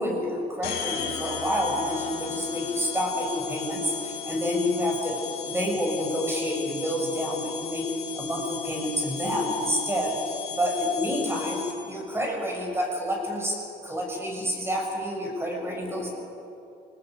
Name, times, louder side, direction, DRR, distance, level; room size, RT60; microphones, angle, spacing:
voice 1, 0.0-5.2 5.4-10.1 10.6-16.1, equal, 15° right, 0 dB, 7.4 m, -28 dB
sound 1, 0.6-12.0, left 7 dB, 75° left, 3.2 m, -36 dB
26.0 x 19.0 x 7.9 m, 2.7 s
cardioid pair, 110°, 17 cm